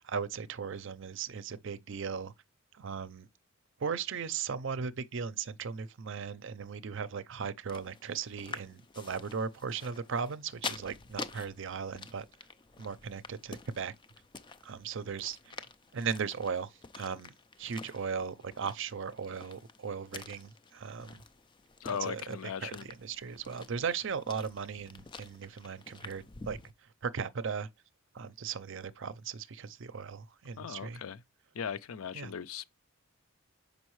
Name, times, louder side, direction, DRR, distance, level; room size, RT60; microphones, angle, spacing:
voice 1, 0.0-2.3 2.7-3.3 3.8-12.2 12.8-13.9 14.6-15.6 15.9-16.7 16.9-17.3 17.6-21.2 21.9-22.4 22.6-26.6 27.0-27.7 28.1-31.0 32.1-32.3, right 6 dB, 60° right, 0.5 m, -37 dB
sound 1, 7.7-26.7, left 4 dB, 25° left, 0.4 m, -48 dB
voice 2, 21.8-22.9 30.6-31.2 31.5-32.6, left 7 dB, 85° left, 0.5 m, -38 dB
6.3 x 5.2 x 3.1 m
head